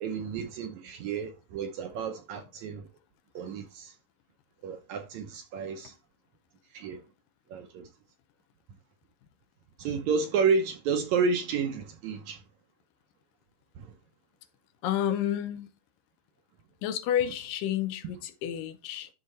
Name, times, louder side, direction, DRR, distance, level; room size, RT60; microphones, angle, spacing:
voice 1, 0.0-2.9 3.4-3.9 4.6-6.0 6.7-7.0 7.5-7.9 9.8-12.4 13.8-13.9, right 5 dB, 75° right, 1.8 m, -31 dB
voice 2, 14.8-15.7 16.8-19.1, left 10 dB, 80° left, 2.4 m, -30 dB
12.0 x 4.1 x 3.1 m
omnidirectional pair, 3.9 m